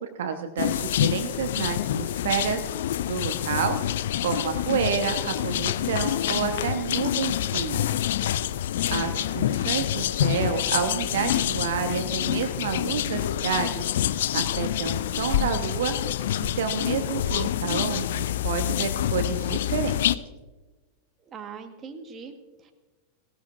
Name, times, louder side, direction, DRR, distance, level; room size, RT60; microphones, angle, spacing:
voice 1, 0.0-2.6 3.1-3.8 4.2-7.9 8.9-15.9 16.4-20.2, right 6 dB, 60° right, 6 dB, 1.0 m, -29 dB
sound 1, 0.6-20.2, left 12 dB, 60° left, 0.4 m, -27 dB
voice 2, 8.7-9.3 21.2-22.7, right 5 dB, 25° right, 5 dB, 1.4 m, -42 dB
18.5 x 16.0 x 2.5 m, 1.2 s
figure-of-eight pair, 90°, 0 cm